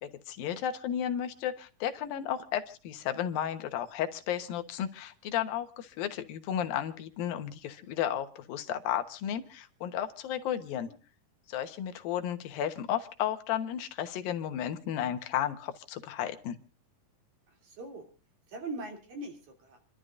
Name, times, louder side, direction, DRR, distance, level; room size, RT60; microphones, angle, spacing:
voice 1, 0.0-10.9 11.5-16.6, left 10 dB, 90° left, 8 dB, 3.0 m, -33 dB
voice 2, 10.6-11.0 17.6-18.1 18.5-19.9, right 2 dB, 55° right, 3 dB, 4.4 m, -42 dB
28.5 x 12.5 x 2.5 m, 0.37 s
omnidirectional pair, 4.0 m